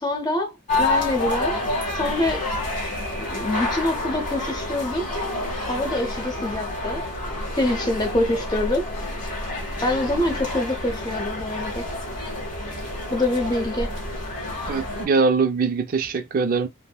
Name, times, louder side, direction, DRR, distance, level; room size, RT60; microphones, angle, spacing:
voice 1, 0.0-1.6 1.9-2.4 3.2-5.1 5.7-7.0 7.5-8.8 9.8-11.9 13.1-13.9, left 1 dB, 20° left, 0.6 m, -25 dB
sound 1, 0.7-15.1, left 2 dB, 35° left, 1.1 m, -29 dB
voice 2, 14.7-16.7, right 4 dB, 40° right, 0.3 m, -22 dB
3.4 x 2.0 x 2.2 m
head